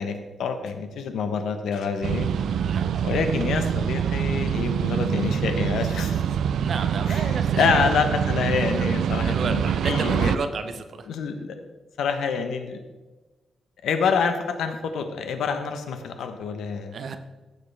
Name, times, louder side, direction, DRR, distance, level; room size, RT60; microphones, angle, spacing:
voice 1, 0.0-2.3 3.0-6.2 7.1-10.3 11.1-11.6 12.0-12.8 13.8-17.0, left 5 dB, 90° left, 7 dB, 1.1 m, -27 dB
sound 1, 2.0-10.4, right 8 dB, 75° right, 0.3 m, -25 dB
voice 2, 6.6-7.9 9.2-11.1 16.9-17.2, right 5 dB, 50° right, 8 dB, 0.8 m, -32 dB
15.0 x 6.8 x 3.4 m, 1.2 s
wide cardioid pair, 160°, 0 cm